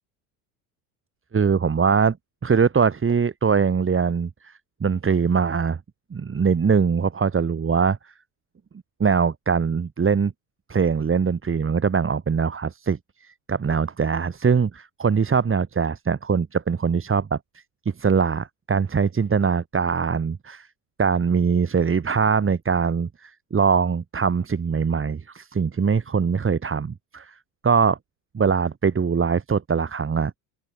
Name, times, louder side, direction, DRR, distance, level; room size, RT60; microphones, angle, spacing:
voice 1, 1.3-2.2 2.4-4.5 4.8-5.8 6.1-8.1 9.0-10.3 10.7-17.4 18.0-20.7 21.0-27.3 27.6-28.0 28.3-30.3, right 6 dB, 25° right, 6.6 m, -22 dB
supercardioid pair, 95°, 46 cm